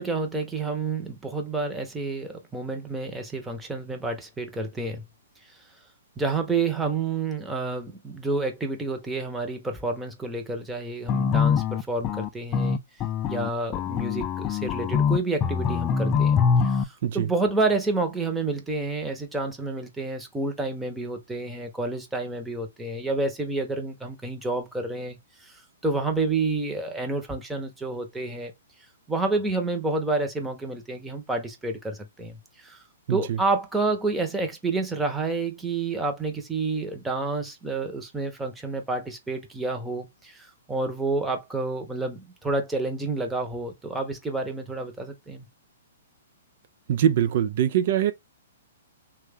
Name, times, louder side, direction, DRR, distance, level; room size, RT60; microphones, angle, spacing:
voice 1, 0.0-5.0 6.2-12.8 13.3-16.4 16.6-25.2 25.8-28.5 29.1-32.8 33.1-45.4, right 3 dB, 10° right, 0.8 m, -29 dB
sound 1, 11.1-16.8, left 6 dB, 25° left, 0.4 m, -24 dB
voice 2, 33.1-33.4 46.9-48.1, right 10 dB, 55° right, 0.4 m, -23 dB
3.1 x 2.3 x 3.4 m
hypercardioid pair, 130°, 0 cm